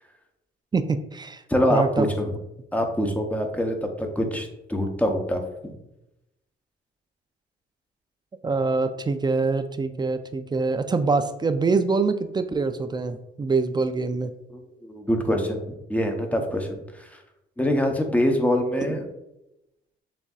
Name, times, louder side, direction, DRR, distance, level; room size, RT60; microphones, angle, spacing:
voice 1, 0.7-1.4 1.7-2.1 8.4-14.3 18.9-19.0, right 4 dB, 20° right, 9 dB, 0.3 m, -24 dB
voice 2, 1.5-2.4 2.7-5.8 14.5-17.1 17.6-19.0, equal, 5° left, 4 dB, 0.7 m, -25 dB
7.1 x 2.6 x 2.3 m, 0.90 s
cardioid pair, 90°, 20 cm